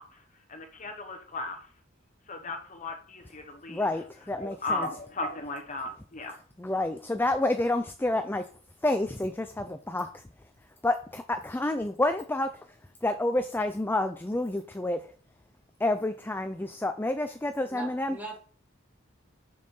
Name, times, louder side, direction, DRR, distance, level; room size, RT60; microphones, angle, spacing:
voice 1, 0.0-1.7 2.3-3.9 4.3-6.4, left 2 dB, 40° left, 5 dB, 1.1 m, -36 dB
voice 2, 3.7-4.9 6.6-8.4 8.8-10.1 10.8-12.5 13.0-15.0 15.8-18.2, left 2 dB, 10° left, 8 dB, 0.4 m, -29 dB
voice 3, 17.7-18.4, right 3 dB, 10° right, 0 dB, 2.1 m, -40 dB
6.6 x 5.4 x 5.4 m, 0.44 s
head